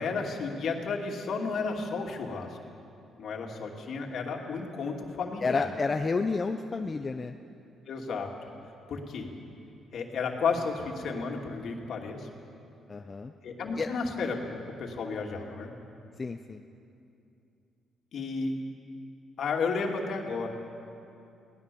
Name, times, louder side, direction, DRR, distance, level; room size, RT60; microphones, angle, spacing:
voice 1, 0.0-2.6 3.2-5.7 7.9-8.3 8.9-9.3 9.9-12.3 13.4-14.4 14.8-15.7 18.1-18.5 19.4-20.5, left 4 dB, 65° left, 1 dB, 2.7 m, -32 dB
voice 2, 5.4-7.3 12.9-13.3 13.8-13.9 16.2-16.6, left 4 dB, 30° left, 5 dB, 0.8 m, -30 dB
22.0 x 18.0 x 7.1 m, 2.6 s
cardioid pair, 90°, 0 cm